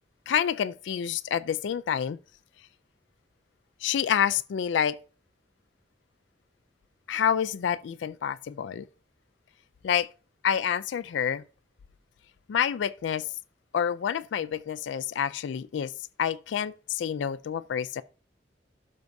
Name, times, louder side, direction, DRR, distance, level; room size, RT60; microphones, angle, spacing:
voice 1, 0.3-2.2 3.8-5.0 7.1-8.9 9.8-10.1 10.4-11.4 12.5-13.2 13.7-15.9 16.2-18.0, left 8 dB, 80° left, 0.3 m, -28 dB
12.0 x 4.6 x 2.6 m
head